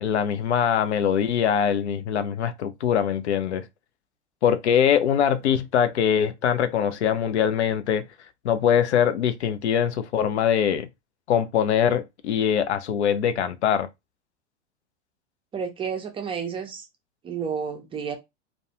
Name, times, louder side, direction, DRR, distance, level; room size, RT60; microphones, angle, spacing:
voice 1, 0.0-3.7 4.4-8.0 8.4-10.9 11.3-13.9, left 8 dB, 70° left, 0.5 m, -22 dB
voice 2, 15.5-16.9 17.2-18.2, right 6 dB, 15° right, 0.5 m, -31 dB
2.3 x 2.2 x 2.8 m
figure-of-eight pair, 90°, 34 cm